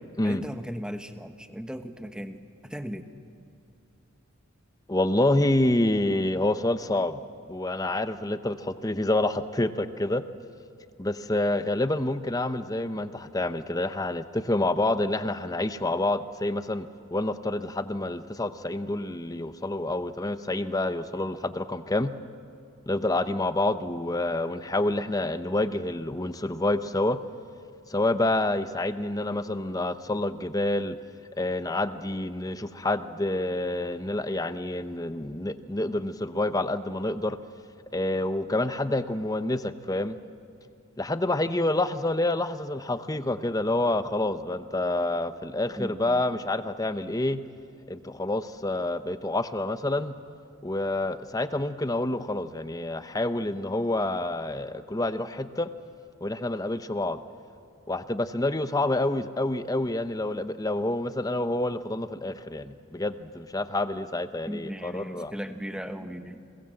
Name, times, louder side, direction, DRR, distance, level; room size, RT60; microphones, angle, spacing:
voice 1, 0.2-2.4 2.7-3.1 45.8-46.3 64.5-66.4, equal, 5° right, 8 dB, 1.1 m, -37 dB
voice 2, 4.9-7.2 7.5-10.2 11.0-22.1 22.9-27.2 27.9-31.0 31.4-37.4 37.9-40.2 41.0-47.4 47.9-50.1 50.6-55.7 56.2-57.2 57.9-65.3, left 1 dB, 15° left, 11 dB, 0.8 m, -28 dB
29.5 x 22.0 x 7.8 m, 2.6 s
head